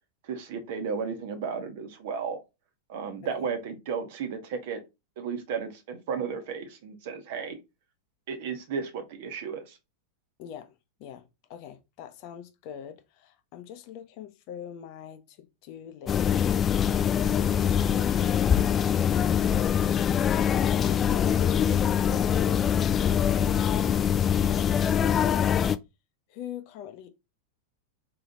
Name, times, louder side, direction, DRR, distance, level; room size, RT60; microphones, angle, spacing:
voice 1, 0.2-2.4 2.9-4.8 5.2-7.6 8.3-9.8, right 6 dB, 50° right, 1.1 m, -34 dB
voice 2, 10.4-22.7 22.9-25.6 26.3-27.1, left 9 dB, 45° left, 0.7 m, -43 dB
sound 1, 16.1-25.8, left 8 dB, 25° left, 0.3 m, -24 dB
3.9 x 3.3 x 3.8 m
figure-of-eight pair, 90°, 0 cm